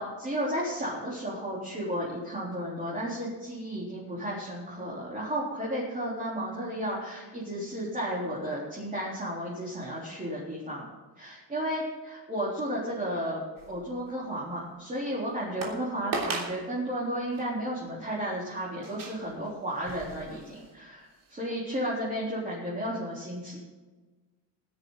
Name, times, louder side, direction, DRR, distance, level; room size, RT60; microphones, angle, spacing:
voice 1, 0.0-10.9 11.2-13.4 13.7-23.6, equal, 20° right, -6 dB, 3.9 m, -33 dB
sound 1, 13.6-14.1 14.7-14.8 15.6-15.8 16.1-16.6 17.3-17.5 18.8-20.8 21.2-21.3, right 3 dB, 50° right, 3.3 m, -37 dB
19.0 x 10.5 x 4.0 m, 1.3 s
cardioid pair, 155°, 43 cm